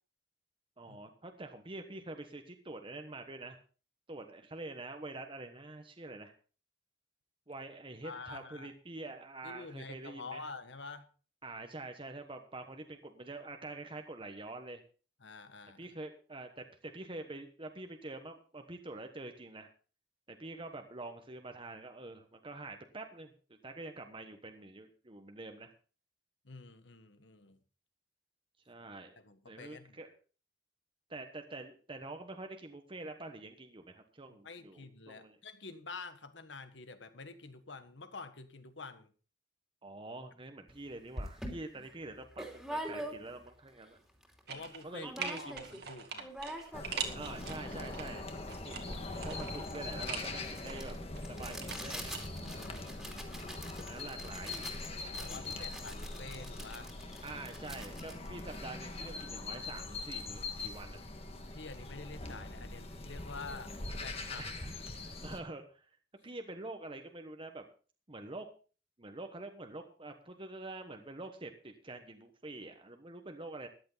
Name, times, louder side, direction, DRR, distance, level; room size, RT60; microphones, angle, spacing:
voice 1, 0.8-3.6 4.1-6.3 7.5-10.4 11.4-14.8 15.8-19.7 20.3-23.3 23.6-25.7 28.6-29.2 29.5-30.1 31.1-35.4 39.8-44.0 44.8-45.6 46.5-46.6 47.1-48.3 48.6-50.9 51.3-52.1 53.8-54.6 55.1-55.7 57.2-61.0 64.4-66.0 66.2-67.7 68.1-68.5 69.0-73.7, right 2 dB, 30° right, 5 dB, 1.2 m, -46 dB
voice 2, 8.0-8.7 9.4-11.1 15.2-15.9 26.4-27.6 29.2-30.0 34.4-39.1 44.5-46.3 47.1-47.4 52.4-53.3 55.0-56.9 61.5-63.7 64.0-64.5, left 4 dB, 70° left, 10 dB, 1.5 m, -48 dB
sound 1, 40.7-40.8 41.2-43.5 44.0-44.1 44.2-44.7 45.0-45.8 46.1-59.2, equal, ahead, 2.7 m, -45 dB
sound 2, 44.5-44.9 45.2-48.0 48.5-50.3 50.6-52.2 52.5-52.6, right 6 dB, 60° right, 2.2 m, -42 dB
sound 3, 46.7-65.4, left 2 dB, 35° left, 1.6 m, -42 dB
14.0 x 11.5 x 4.0 m, 0.37 s
head